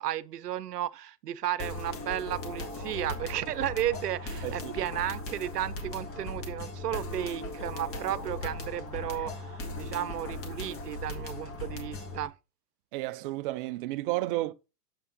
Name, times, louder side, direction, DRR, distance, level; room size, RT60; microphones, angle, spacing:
voice 1, 0.0-12.3, right 12 dB, 75° right, 0.8 m, -34 dB
sound 1, 1.6-12.3, left 2 dB, 25° left, 1.9 m, -38 dB
voice 2, 4.4-4.7 12.9-14.5, right 18 dB, 35° right, 0.5 m, -32 dB
7.6 x 5.5 x 3.8 m
hypercardioid pair, 110°, 48 cm